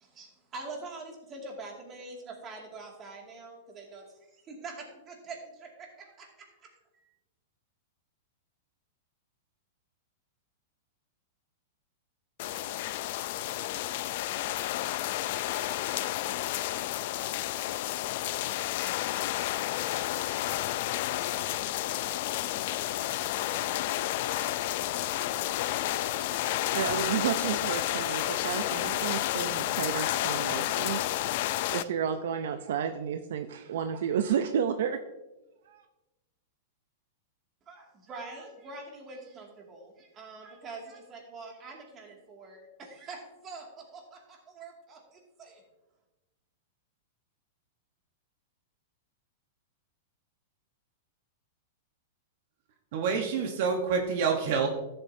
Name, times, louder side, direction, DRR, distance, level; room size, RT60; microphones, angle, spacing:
voice 1, 0.0-7.1 37.7-45.6, right 3 dB, 25° right, 0 dB, 2.2 m, -45 dB
sound 1, 12.4-31.8, left 14 dB, 55° left, 0.4 m, -31 dB
voice 2, 26.7-31.0 31.7-35.0 35.7-35.8, right 8 dB, 70° right, 8 dB, 0.5 m, -31 dB
voice 3, 52.9-54.7, right 5 dB, 55° right, 3 dB, 1.1 m, -27 dB
13.0 x 7.8 x 2.7 m, 1.1 s
supercardioid pair, 145°, 0 cm